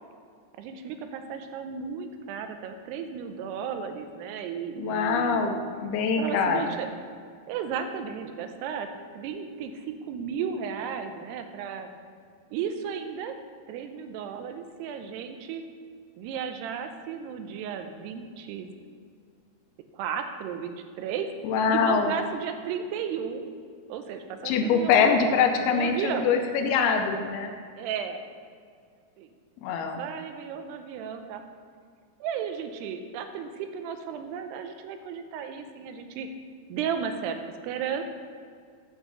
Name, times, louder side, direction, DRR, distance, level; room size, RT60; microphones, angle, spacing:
voice 1, 0.6-5.4 6.2-6.9 7.5-8.9 9.1-11.9 12.5-13.4 13.7-15.6 16.2-18.7 19.9-21.3 21.7-23.5 23.9-25.3 25.6-26.3 27.8-28.2 29.2-29.3 29.8-31.4 32.2-36.3 36.7-37.4 37.6-38.0, right 7 dB, 90° right, 7 dB, 2.7 m, -34 dB
voice 2, 4.8-5.6 5.8-6.6 21.4-22.1 24.4-27.5 29.6-30.0, left 6 dB, 80° left, 4 dB, 2.6 m, -24 dB
8.2 x 6.1 x 6.7 m, 2.1 s
omnidirectional pair, 4.7 m